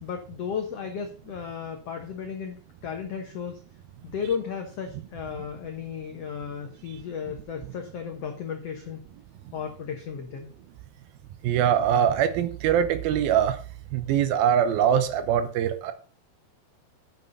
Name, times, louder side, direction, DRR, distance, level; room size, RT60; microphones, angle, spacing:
voice 1, 0.0-2.6 2.8-3.6 4.0-9.0 9.5-10.5, left 7 dB, 90° left, 4 dB, 1.3 m, -34 dB
voice 2, 11.4-13.6 13.9-15.9, right 9 dB, 75° right, 11 dB, 2.6 m, -23 dB
9.5 x 6.8 x 5.3 m, 0.39 s
omnidirectional pair, 4.6 m